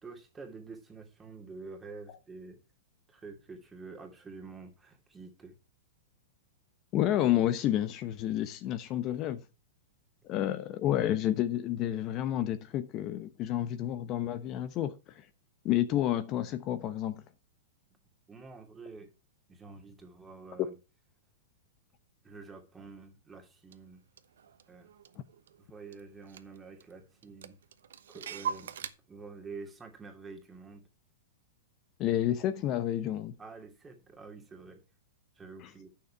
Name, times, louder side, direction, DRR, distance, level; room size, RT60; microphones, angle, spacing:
voice 1, 0.0-2.6 3.1-5.5 18.3-19.1 19.5-20.8 22.2-24.0 24.7-24.9 25.6-27.6 28.1-30.9 33.4-34.8 35.4-35.9, right 4 dB, 15° right, 2.5 m, -48 dB
voice 2, 6.9-9.4 10.3-15.3 15.6-17.2 32.0-33.3 35.6-35.7, left 12 dB, 35° left, 0.9 m, -30 dB
Clock, 23.7-23.8 24.2-25.6 25.9-26.0 26.3-26.9 27.2-28.9, right 7 dB, 80° right, 1.0 m, -40 dB
9.4 x 6.8 x 4.7 m
hypercardioid pair, 135°, 0 cm